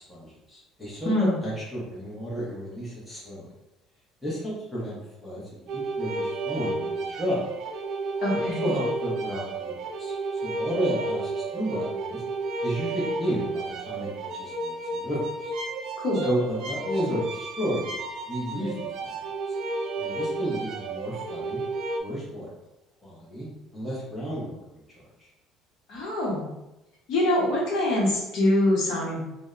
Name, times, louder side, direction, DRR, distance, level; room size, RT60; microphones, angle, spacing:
voice 1, 0.0-1.1 1.4-3.5 4.2-7.4 8.3-12.2 12.6-15.5 16.2-17.9 18.3-19.2 19.5-19.6 20.0-21.6 22.0-22.5 23.0-24.8, equal, 5° left, -7 dB, 0.7 m, -32 dB
voice 2, 1.0-1.4 8.2-8.7 16.0-16.3 25.9-26.5 27.1-29.2, left 1 dB, 55° left, -4 dB, 0.8 m, -24 dB
sound 1, 5.7-22.0, right 3 dB, 55° right, 0.3 m, -32 dB
2.7 x 2.0 x 2.3 m, 0.95 s
cardioid pair, 155°, 0 cm